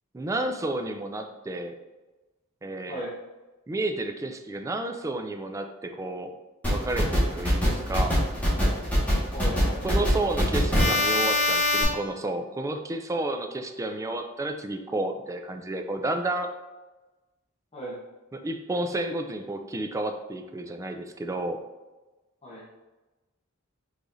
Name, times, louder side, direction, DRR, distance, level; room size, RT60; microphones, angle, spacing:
voice 1, 0.1-1.8 2.6-3.0 3.7-6.3 6.7-8.2 9.8-16.5 18.3-21.6, right 2 dB, 15° right, 6 dB, 0.3 m, -31 dB
sound 1, 6.6-11.8, left 1 dB, 10° left, 1.5 m, -24 dB
voice 2, 9.3-10.0 17.7-18.0 22.4-22.6, right 1 dB, 30° left, -8 dB, 0.8 m, -36 dB
4.8 x 4.0 x 2.6 m, 1.1 s
head